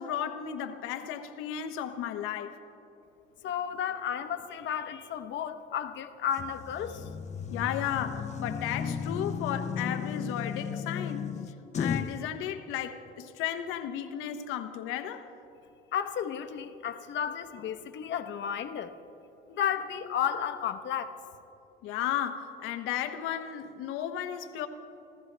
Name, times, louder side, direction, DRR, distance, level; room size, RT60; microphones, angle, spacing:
voice 1, 0.0-2.6 7.5-11.3 11.8-15.2 21.8-24.7, left 10 dB, 90° left, 0.9 m, -34 dB
voice 2, 3.4-7.1 15.9-19.0 19.5-21.2, left 8 dB, 60° left, 0.9 m, -33 dB
sound 1, 6.4-12.2, left 6 dB, 35° left, 0.7 m, -34 dB
27.0 x 14.5 x 3.3 m
cardioid pair, 105°, 21 cm